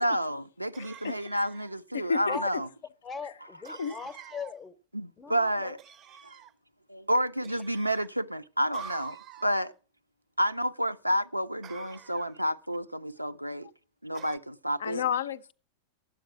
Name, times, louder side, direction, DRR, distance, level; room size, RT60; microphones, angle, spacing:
voice 1, 0.0-2.7 3.7-3.8 4.9-5.8 6.2-6.4 6.9-9.7 10.4-13.7 14.0-15.0, equal, 90° right, 0.4 m, -30 dB
sound 1, 0.7-1.8 3.6-4.6 5.8-6.5 7.4-8.1 8.7-9.7 11.6-12.4 14.1-14.4, right 8 dB, 35° right, 0.5 m, -48 dB
voice 2, 1.9-2.4 3.2-3.3 3.8-4.0 14.8-15.5, left 7 dB, 65° left, 0.4 m, -30 dB
voice 3, 3.0-4.7 5.2-5.7, left 5 dB, 20° left, 0.6 m, -39 dB
10.0 x 7.9 x 5.6 m
figure-of-eight pair, 90°, 0 cm